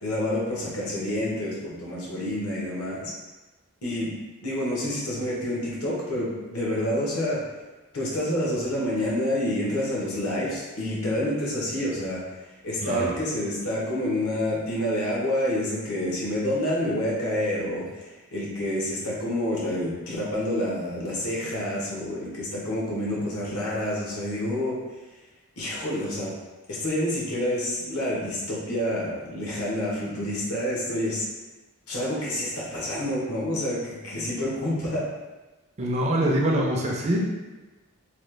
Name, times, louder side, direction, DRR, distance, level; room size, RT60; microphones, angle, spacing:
voice 1, 0.0-3.1 3.8-4.1 4.4-7.4 7.9-12.2 12.6-24.8 25.6-26.3 26.7-31.3 31.9-35.1, left 1 dB, 80° left, -5 dB, 1.0 m, -28 dB
voice 2, 12.8-13.1 35.8-37.2, right 1 dB, 30° right, -2 dB, 0.4 m, -24 dB
3.1 x 2.2 x 3.2 m, 1.1 s
head